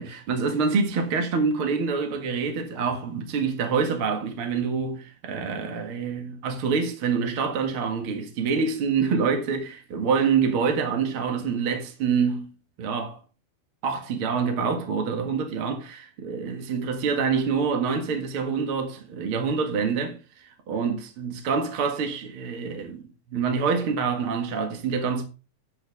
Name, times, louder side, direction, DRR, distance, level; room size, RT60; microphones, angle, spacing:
voice 1, 0.0-12.5 12.8-13.2 13.8-23.0 23.3-25.2, right 5 dB, 45° right, 2.2 m, -26 dB
10.5 x 6.3 x 3.4 m
omnidirectional pair, 3.8 m